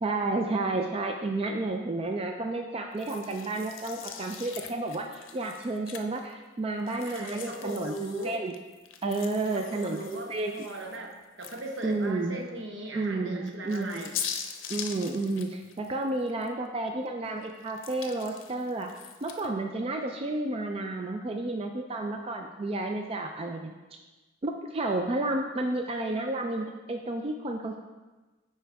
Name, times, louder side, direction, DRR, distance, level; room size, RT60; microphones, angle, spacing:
voice 1, 0.0-8.5 9.0-10.5 11.8-12.4 12.9-14.1 14.7-18.9 19.2-23.7 24.4-27.8, right 2 dB, 30° right, 3 dB, 0.4 m, -31 dB
sound 1, 3.0-6.3 6.8-12.0 12.5-12.6 13.4-16.5 16.9-19.5, left 8 dB, 80° left, 0.6 m, -42 dB
voice 2, 6.9-8.4 9.5-14.2, right 2 dB, 75° right, 1 dB, 1.1 m, -38 dB
9.7 x 4.4 x 3.4 m, 1.2 s
head